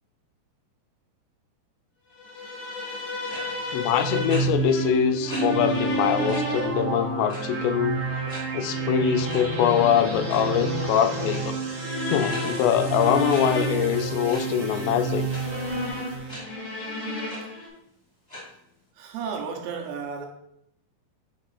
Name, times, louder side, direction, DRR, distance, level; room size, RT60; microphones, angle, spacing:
sound 1, 2.2-17.7, left 2 dB, 70° left, 3.4 m, -33 dB
sound 2, 3.3-3.4 4.3-4.4 5.3-5.4 5.8-5.9 6.3-6.4 7.3-7.6 8.3-8.4 9.3-9.4 10.1-10.4 11.3-11.4 12.3-12.4 13.3-13.4 14.3-14.4 15.3-15.4 16.3-16.4 16.9-17.0 17.3-17.4 18.3-18.4, left 1 dB, 25° left, 0.9 m, -38 dB
voice 1, 3.7-8.0 8.5-11.6 12.1-15.3, left 9 dB, 90° left, 9 dB, 2.9 m, -23 dB
sound 3, 3.8-16.4, right 5 dB, 60° right, 1.8 m, -30 dB
voice 2, 19.0-20.3, right 6 dB, 80° right, 2 dB, 2.6 m, -33 dB
9.0 x 3.5 x 4.0 m, 0.76 s
omnidirectional pair, 5.0 m